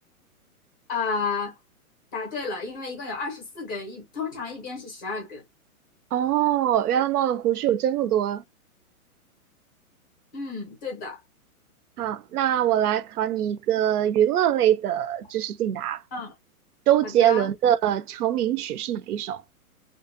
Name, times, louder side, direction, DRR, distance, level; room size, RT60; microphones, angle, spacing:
voice 1, 0.9-1.6 2.1-5.4 10.3-11.2 16.1-16.3 17.0-17.5, left 4 dB, 15° left, 0.5 m, -32 dB
voice 2, 6.1-8.4 12.0-16.0 16.9-19.4, right 11 dB, 90° right, 0.5 m, -23 dB
2.5 x 2.0 x 2.5 m
hypercardioid pair, 150°, 44 cm